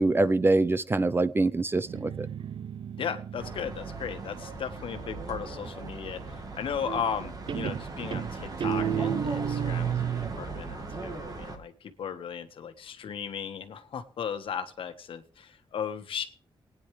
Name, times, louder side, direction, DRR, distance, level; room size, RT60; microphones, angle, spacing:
voice 1, 0.0-2.3, right 2 dB, 25° right, 15 dB, 0.7 m, -24 dB
Guitar, 1.7-5.3 6.8-7.2 7.5-10.4, right 8 dB, 65° right, 0.6 m, -33 dB
voice 2, 3.0-16.3, left 7 dB, 75° left, 8 dB, 1.4 m, -36 dB
sound 1, 3.4-11.6, right 3 dB, 45° right, 2.0 m, -39 dB
19.5 x 9.7 x 3.3 m, 0.39 s
cardioid pair, 105°, 9 cm